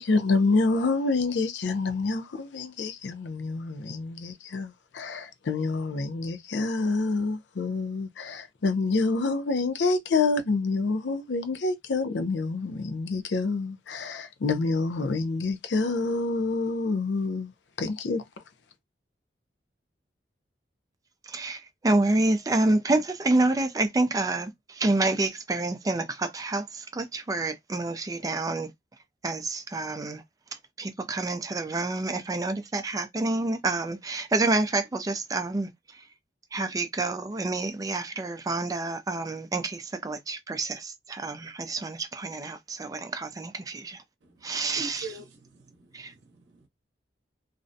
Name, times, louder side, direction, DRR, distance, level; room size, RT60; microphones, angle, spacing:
voice 1, 0.0-17.5 17.8-18.2, left 3 dB, 85° left, 0.5 m, -27 dB
voice 2, 21.3-28.7 29.2-30.2 30.8-35.7 36.5-44.0 44.4-45.0 45.9-46.1, right 2 dB, 20° right, 0.4 m, -28 dB
voice 3, 44.2-46.7, right 3 dB, 90° right, 0.7 m, -44 dB
2.5 x 2.1 x 2.5 m
head